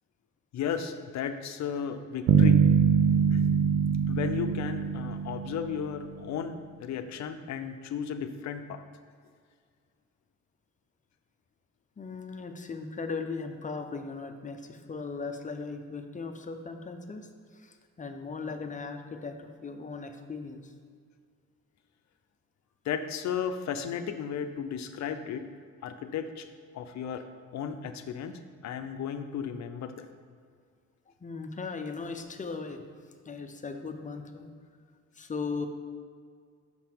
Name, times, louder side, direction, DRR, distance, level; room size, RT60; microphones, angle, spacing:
voice 1, 0.5-2.6 3.3-3.4 4.1-8.8 22.8-25.5 25.8-26.5 26.7-30.1, left 7 dB, 65° left, 8 dB, 0.6 m, -34 dB
sound 1, 2.3-6.2, right 6 dB, 65° right, 0.5 m, -23 dB
voice 2, 12.0-20.7 31.2-32.8 33.3-34.5 35.2-35.7, left 4 dB, 25° left, 6 dB, 0.6 m, -38 dB
6.0 x 5.7 x 4.5 m, 2.1 s
cardioid pair, 90°, 30 cm